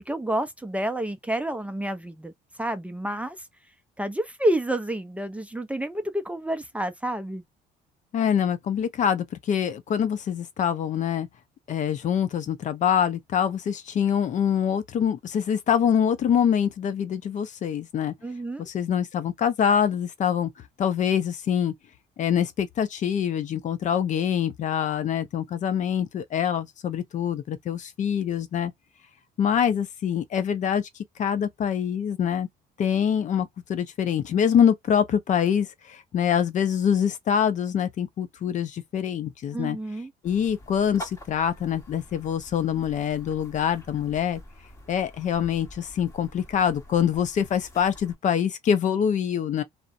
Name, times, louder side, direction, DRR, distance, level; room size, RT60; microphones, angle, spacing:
voice 1, 0.1-2.3 2.6-3.5 4.0-7.4 18.2-18.7 39.5-40.1, right 1 dB, 10° right, 0.4 m, -29 dB
voice 2, 8.1-11.3 11.7-18.1 18.6-20.5 20.8-21.7 22.2-28.7 29.4-30.9 31.2-32.5 32.8-39.8 40.2-44.4 44.9-49.6, left 8 dB, 45° left, 0.5 m, -25 dB
sound 1, 40.2-48.2, left 1 dB, 20° left, 1.2 m, -46 dB
2.4 x 2.0 x 2.5 m
cardioid pair, 110°, 17 cm